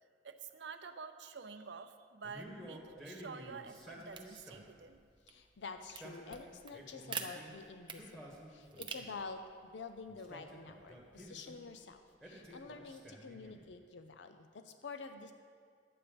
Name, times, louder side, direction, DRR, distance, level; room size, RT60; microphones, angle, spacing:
voice 1, 0.2-5.1, right 5 dB, 75° right, 8 dB, 0.6 m, -49 dB
Male speech man speaking, 2.2-4.8 5.8-7.5 7.9-9.2 10.1-11.6 12.2-13.7, equal, 5° left, 1.7 m, -52 dB
sound 1, 4.1-12.0, right 6 dB, 30° right, 0.7 m, -50 dB
voice 2, 5.3-15.3, left 4 dB, 80° left, 8 dB, 0.5 m, -48 dB
11.0 x 8.5 x 5.1 m, 2.1 s
head